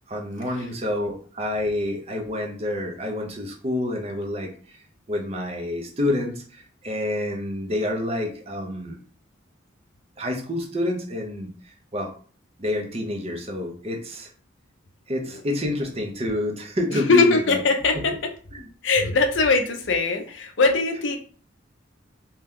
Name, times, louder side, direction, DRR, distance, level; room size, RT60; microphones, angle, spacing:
voice 1, 0.1-4.5 5.1-9.0 10.2-11.5 11.9-12.1 12.6-14.3 15.1-17.6 18.5-18.6, left 1 dB, 30° right, 1 dB, 0.6 m, -28 dB
voice 2, 16.9-18.3 18.8-21.2, left 3 dB, 65° left, 4 dB, 0.5 m, -21 dB
2.8 x 2.2 x 3.5 m, 0.43 s
head